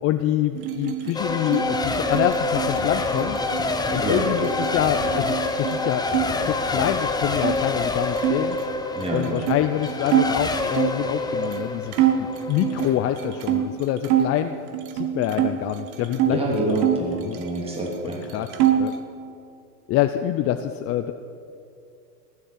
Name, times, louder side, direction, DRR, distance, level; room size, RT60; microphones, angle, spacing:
voice 1, 0.0-3.4 3.9-6.1 6.4-8.6 9.1-11.9 12.5-14.6 14.9-16.8 17.3-17.4 18.3-18.5 18.8-18.9 19.9-21.1, left 12 dB, 30° left, 8 dB, 0.6 m, -26 dB
sound 1, 0.5-6.3 6.6-7.6 8.2-11.0 11.5-11.6 11.9-14.3 14.7-16.4 16.7-17.9 18.1-19.0, right 11 dB, 55° right, 1.8 m, -26 dB
Race car auto racing / Accelerating revving vroom / Mechanisms, 1.1-13.7, left 3 dB, 10° left, 1.0 m, -27 dB
voice 2, 4.0-4.3 8.9-9.3 16.3-18.2, right 2 dB, 10° right, -2 dB, 3.1 m, -26 dB
20.0 x 8.5 x 8.6 m, 2.5 s
hypercardioid pair, 110°, 49 cm